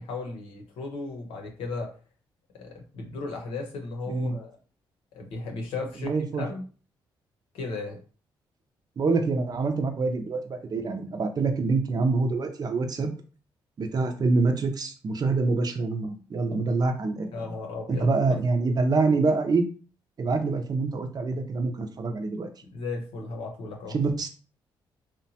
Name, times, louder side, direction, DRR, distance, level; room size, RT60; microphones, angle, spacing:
voice 1, 0.0-1.9 2.5-4.5 5.1-6.1 6.4-6.6 7.5-8.0 17.3-18.4 22.7-24.0, left 3 dB, 85° left, 2 dB, 0.8 m, -35 dB
voice 2, 4.1-4.4 6.0-6.4 9.0-13.1 13.8-17.5 17.9-19.7 20.2-22.5 23.9-24.3, right 3 dB, 45° right, 6 dB, 0.6 m, -26 dB
2.8 x 2.2 x 2.8 m, 0.38 s
cardioid pair, 65°, 9 cm